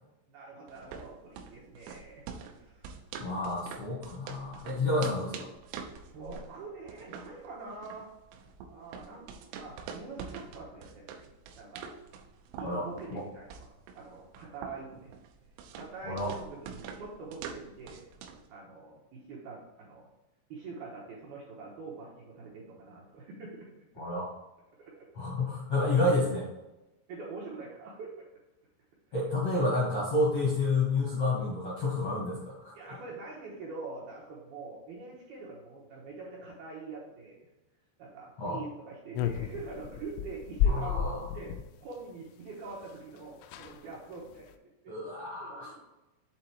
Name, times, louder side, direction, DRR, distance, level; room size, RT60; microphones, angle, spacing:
voice 1, 0.3-2.3 2.5-2.9 4.8-4.9 6.1-8.1 8.7-9.3 9.6-11.3 11.6-11.9 12.6-13.7 14.0-15.1 15.7-18.1 18.5-20.1 20.5-23.7 24.8-24.9 27.1-28.3 32.7-37.5 38.0-41.5 41.8-44.5 44.8-44.9 45.4-45.8, right 3 dB, 75° right, -4 dB, 2.3 m, -44 dB
sound 1, 0.7-18.5, right 6 dB, 90° right, 3.2 m, -45 dB
voice 2, 3.2-5.5 12.6-13.2 16.0-16.3 24.0-24.3 25.1-26.5 29.1-32.7 38.4-38.6 40.7-41.2 44.9-45.8, left 2 dB, 65° left, -6 dB, 1.4 m, -30 dB
sound 2, 39.1-41.7 42.9-43.0 43.2-43.3 43.4-43.8 44.3-44.5, left 7 dB, 85° left, 2.9 m, -31 dB
8.0 x 3.9 x 4.5 m, 1.0 s
omnidirectional pair, 5.7 m